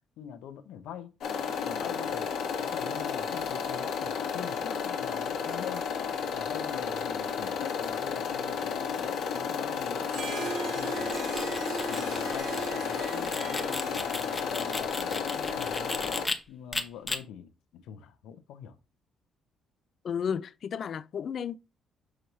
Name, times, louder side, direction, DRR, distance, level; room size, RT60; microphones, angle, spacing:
voice 1, 0.2-1.1 1.6-2.3 2.6-5.9 6.3-11.2 11.9-16.2 16.5-18.8, left 9 dB, 85° left, 1.0 m, -43 dB
sound 1, 1.2-16.3, left 6 dB, 70° left, 1.5 m, -32 dB
Harp, 10.0-15.7, right 4 dB, 70° right, 1.7 m, -39 dB
sound 2, 10.8-16.4 16.7-17.2, left 2 dB, 15° left, 0.9 m, -36 dB
voice 2, 20.0-21.6, left 7 dB, 50° left, 0.4 m, -33 dB
6.4 x 3.1 x 5.5 m
cardioid pair, 120°, 0 cm